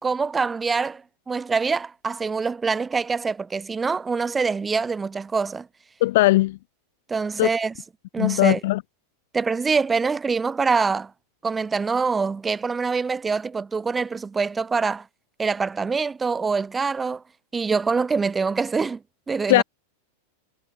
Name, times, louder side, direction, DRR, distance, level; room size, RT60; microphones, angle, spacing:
voice 1, 0.0-5.7 7.1-7.7 8.1-8.6 9.3-11.1 11.4-15.1 15.4-17.2 17.5-19.0 19.3-19.6, right 4 dB, 15° right, 2.2 m, -25 dB
voice 2, 6.0-6.6 7.4-7.5 8.2-8.8 19.5-19.6, left 18 dB, 50° left, 1.3 m, -19 dB
figure-of-eight pair, 90°, 0 cm